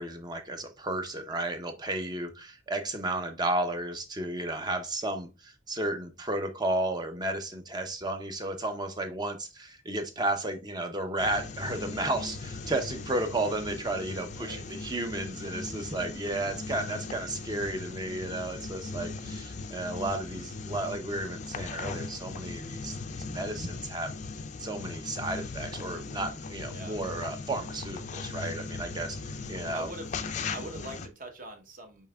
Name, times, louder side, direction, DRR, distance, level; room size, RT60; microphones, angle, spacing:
voice 1, 0.0-24.1 24.6-29.9, right 2 dB, 20° right, 7 dB, 0.5 m, -33 dB
sound 1, 11.2-31.1, left 3 dB, 35° left, 0.4 m, -39 dB
voice 2, 14.3-14.8 26.7-27.0 29.7-30.2 30.5-32.1, right 1 dB, 40° right, 5 dB, 0.9 m, -43 dB
5.5 x 4.2 x 2.3 m, 0.28 s
head